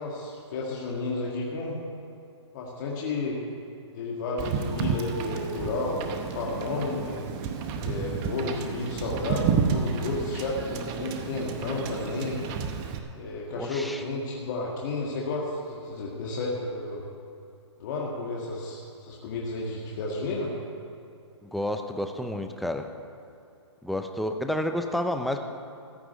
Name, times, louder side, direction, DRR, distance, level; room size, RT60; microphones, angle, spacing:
voice 1, 0.0-1.8 2.5-3.4 3.9-7.3 7.8-12.5 13.1-17.0 17.8-20.5, left 2 dB, 40° left, -3 dB, 1.8 m, -32 dB
Wind / Boat Water vehicle, 4.4-13.0, right 6 dB, 25° right, 0.9 m, -31 dB
voice 2, 13.6-14.0 21.4-22.9 23.8-25.4, left 1 dB, ahead, 5 dB, 0.5 m, -30 dB
14.5 x 6.0 x 9.4 m, 2.7 s
hypercardioid pair, 145°, 15 cm